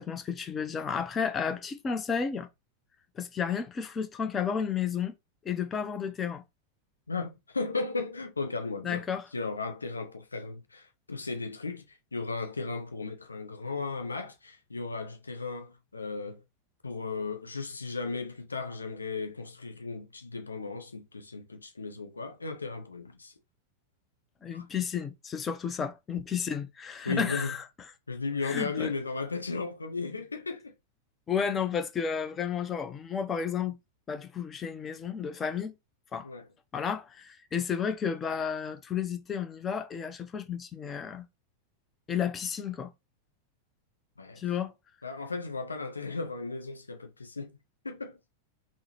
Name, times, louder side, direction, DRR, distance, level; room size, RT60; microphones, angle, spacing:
voice 1, 0.0-2.5 3.2-5.1 5.4-6.4 8.8-9.3 24.4-27.6 28.4-28.9 31.3-33.8 34.1-35.7 36.1-36.3 36.7-41.3 42.1-42.9 44.4-44.7, left 7 dB, 20° left, 0.5 m, -32 dB
voice 2, 7.1-9.1 9.3-16.4 16.8-23.3 24.5-24.7 27.0-27.6 28.1-30.8 36.2-36.5 44.2-44.4 45.0-47.6 47.8-48.2, left 4 dB, 80° left, 0.4 m, -35 dB
3.5 x 2.0 x 2.8 m
figure-of-eight pair, 90°, 0 cm